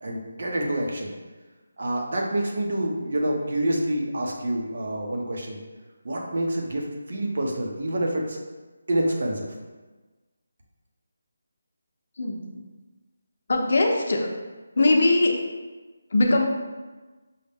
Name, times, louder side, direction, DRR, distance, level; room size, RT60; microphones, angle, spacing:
voice 1, 0.0-1.1 1.8-5.6 6.0-8.4 8.9-9.5, right 1 dB, 55° right, 0 dB, 0.8 m, -27 dB
voice 2, 12.2-12.7 13.5-14.3 14.8-15.4 16.1-16.5, left 2 dB, 55° left, 2 dB, 0.6 m, -21 dB
5.5 x 2.1 x 3.4 m, 1.3 s
figure-of-eight pair, 170°, 0 cm